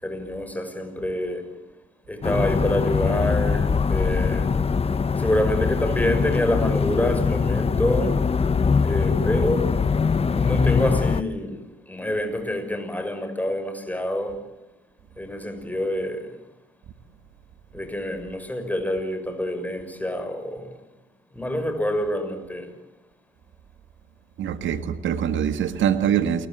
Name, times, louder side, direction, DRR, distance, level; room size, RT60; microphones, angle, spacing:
voice 1, 0.0-1.5 2.1-4.5 5.2-8.3 8.8-9.8 10.3-14.4 15.2-16.3 17.7-20.7 21.3-22.7, left 1 dB, 10° left, 6.4 m, -27 dB
sound 1, 2.2-11.2, left 5 dB, 30° left, 0.9 m, -22 dB
voice 2, 24.4-26.5, right 9 dB, 75° right, 1.7 m, -23 dB
28.5 x 22.0 x 7.9 m
cardioid pair, 90°, 20 cm